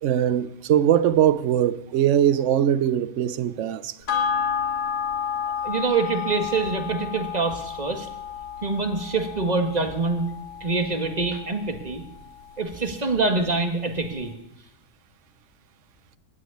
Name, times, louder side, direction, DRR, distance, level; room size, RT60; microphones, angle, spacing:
voice 1, 0.0-4.0, right 10 dB, 60° right, 0.9 m, -21 dB
sound 1, 4.1-12.8 13.2-13.3, left 7 dB, 75° left, 2.7 m, -31 dB
voice 2, 5.6-8.1 8.6-10.3 10.6-12.0 12.6-14.3, right 3 dB, 25° right, 1.6 m, -25 dB
16.0 x 6.2 x 10.0 m
omnidirectional pair, 1.6 m